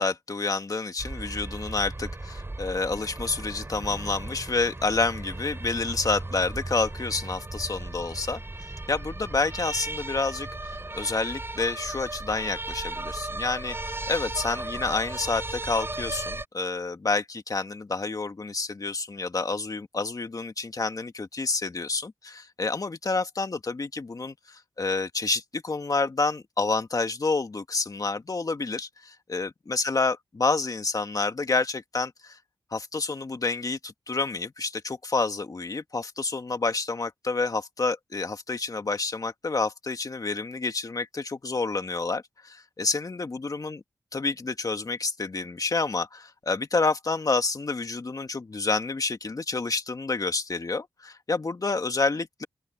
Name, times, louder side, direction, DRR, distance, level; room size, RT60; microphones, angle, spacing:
voice 1, 0.0-8.4 8.9-13.8 14.1-32.4 32.7-43.8 44.1-52.5, left 3 dB, 50° left, 1.9 m, -29 dB
sound 1, 1.0-16.5, right 2 dB, 30° right, 4.2 m, -36 dB
open air
cardioid pair, 50°, 8 cm